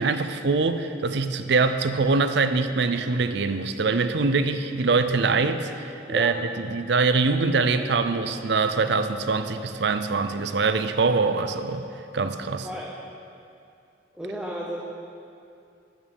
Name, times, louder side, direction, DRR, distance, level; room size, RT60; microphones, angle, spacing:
voice 1, 0.0-6.3 6.6-11.8 12.1-12.7, right 4 dB, 60° right, 10 dB, 0.5 m, -23 dB
voice 2, 14.2-14.8, equal, 5° right, -4 dB, 0.7 m, -32 dB
11.0 x 6.2 x 6.3 m, 2.6 s
head